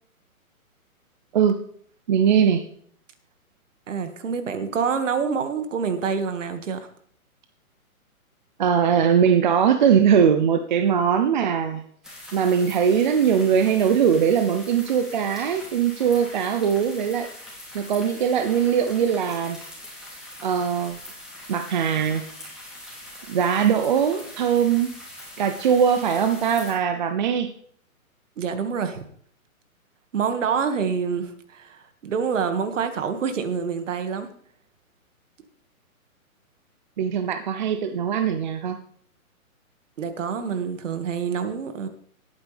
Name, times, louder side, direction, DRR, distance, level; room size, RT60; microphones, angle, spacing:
voice 1, 2.1-2.6 8.6-11.8 12.3-17.3 17.7-19.6 20.4-21.0 21.5-22.2 23.3-24.9 25.4-27.5 37.0-38.8, right 8 dB, 35° right, 7 dB, 0.7 m, -21 dB
voice 2, 3.9-6.9 28.4-29.0 30.1-34.3 40.0-41.9, right 6 dB, 55° right, 8 dB, 2.0 m, -27 dB
sound 1, 12.0-26.7, left 1 dB, ahead, 2.8 m, -42 dB
19.5 x 9.1 x 3.4 m, 0.62 s
hypercardioid pair, 155°, 43 cm